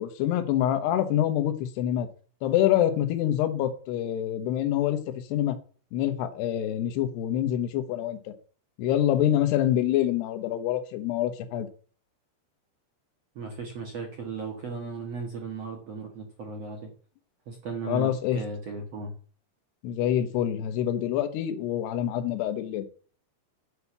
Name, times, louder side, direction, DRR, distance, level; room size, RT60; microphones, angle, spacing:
voice 1, 0.0-2.1 2.4-5.0 5.3-5.6 5.9-8.3 8.8-11.7 17.9-18.4 19.8-22.8, left 11 dB, 70° left, 8 dB, 2.9 m, -26 dB
voice 2, 13.3-16.9 17.4-19.1, right 4 dB, 65° right, 1 dB, 1.6 m, -36 dB
8.5 x 6.5 x 8.0 m, 0.41 s
omnidirectional pair, 5.6 m